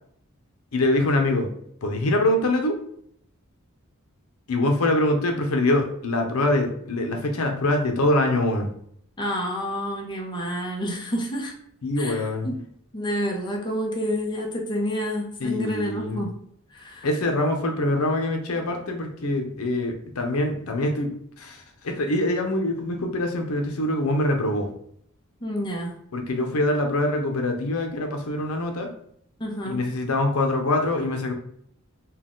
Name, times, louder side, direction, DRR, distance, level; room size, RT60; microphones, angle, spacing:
voice 1, 0.7-1.5 1.8-2.8 4.5-8.7 11.8-12.5 15.4-16.2 17.0-24.7 26.1-28.9 29.6-31.3, left 1 dB, 85° left, 3 dB, 0.7 m, -24 dB
voice 2, 9.2-11.5 12.0-12.5 12.9-16.4 16.7-17.1 25.4-25.9 29.4-29.8, equal, 20° left, -1 dB, 0.8 m, -29 dB
4.0 x 2.3 x 3.7 m, 0.66 s
head